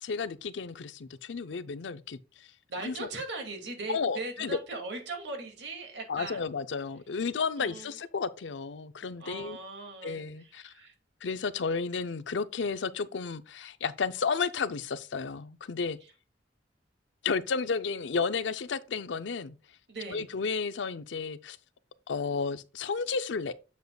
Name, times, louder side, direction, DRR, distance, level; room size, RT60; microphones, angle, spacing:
voice 1, 0.0-2.5 2.8-3.1 3.9-4.6 6.1-9.6 10.0-10.7 11.2-16.0 17.2-19.6 20.1-21.6 22.1-23.5, left 5 dB, 90° left, 0.5 m, -32 dB
voice 2, 2.7-6.5 7.6-7.9 9.2-10.9 19.9-20.3, right 3 dB, 70° right, 2.4 m, -39 dB
7.8 x 7.3 x 2.3 m
head